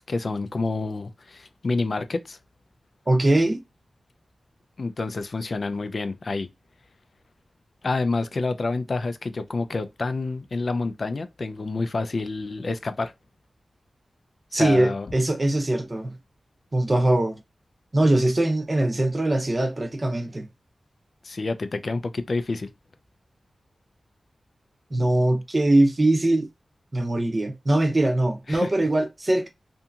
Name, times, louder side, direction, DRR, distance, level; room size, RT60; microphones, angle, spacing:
voice 1, 0.0-2.4 4.8-6.5 7.8-13.1 14.5-15.1 21.2-22.7 28.5-28.7, left 3 dB, 50° left, 0.3 m, -28 dB
voice 2, 3.1-3.6 14.5-16.1 16.7-17.4 17.9-20.5 24.9-26.5 26.9-29.5, right 1 dB, 30° right, 0.6 m, -22 dB
2.8 x 2.6 x 2.3 m
wide cardioid pair, 100°, 0 cm